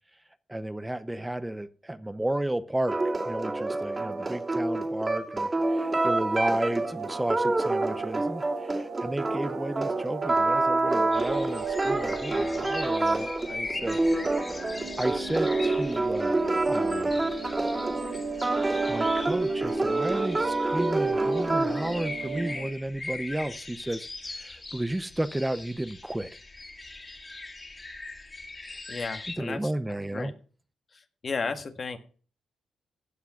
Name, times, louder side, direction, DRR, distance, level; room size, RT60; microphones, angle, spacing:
voice 1, 0.5-3.0 3.2-14.0 14.7-17.3 18.9-26.3 29.4-30.3, right 1 dB, 10° right, 13 dB, 0.8 m, -33 dB
sound 1, 2.9-22.0, right 2 dB, 30° right, 2.5 m, -27 dB
sound 2, 5.6-22.7, right 4 dB, 70° right, 4.8 m, -37 dB
sound 3, 11.1-29.3, left 2 dB, 30° left, 3.1 m, -41 dB
voice 2, 28.9-29.7 30.1-30.3 30.9-32.0, left 4 dB, 50° left, 8 dB, 1.7 m, -34 dB
16.0 x 5.9 x 5.8 m, 0.41 s
supercardioid pair, 55°, 0 cm